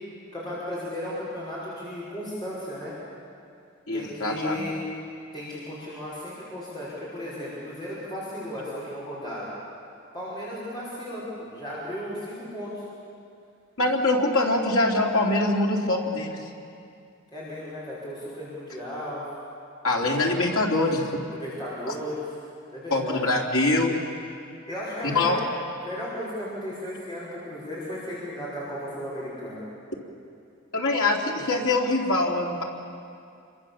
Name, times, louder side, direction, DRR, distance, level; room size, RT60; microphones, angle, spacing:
voice 1, 0.3-2.9 3.9-4.7 5.3-9.5 10.1-12.8 17.3-19.2 21.3-22.2 22.7-23.2 24.7-25.3 25.8-29.6, left 1 dB, 20° left, -8 dB, 5.7 m, -35 dB
voice 2, 3.9-4.7 13.8-16.4 19.8-21.1 22.9-23.9 25.1-25.4 30.7-32.6, left 2 dB, 85° left, 0 dB, 3.3 m, -23 dB
28.5 x 23.5 x 7.3 m, 2.5 s
head